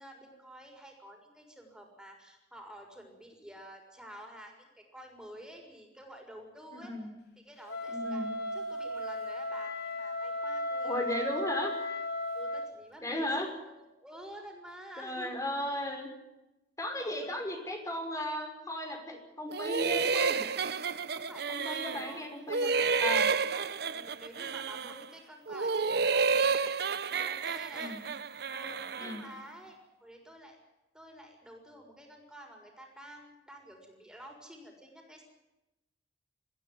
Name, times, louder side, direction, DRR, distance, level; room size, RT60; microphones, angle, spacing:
voice 1, 0.0-6.9 7.4-8.2 8.5-11.0 12.3-15.4 17.0-17.4 21.1-22.2 23.1-26.5 27.1-27.9 28.5-30.6 30.9-35.2, equal, 5° right, 2 dB, 6.5 m, -50 dB
voice 2, 6.7-7.1 7.9-8.3 10.8-11.7 13.0-13.5 15.0-16.1 16.8-20.4 21.5-22.7 23.0-23.3 27.7-28.0 29.0-29.2, left 1 dB, 20° left, 4 dB, 5.5 m, -35 dB
Wind instrument woodwind instrument, 7.7-12.7, left 1 dB, 60° left, 3.6 m, -35 dB
sound 1, 19.5-22.2 22.5-25.1 25.5-29.2, right 5 dB, 65° right, 1.0 m, -30 dB
23.0 x 16.0 x 9.6 m, 0.94 s
head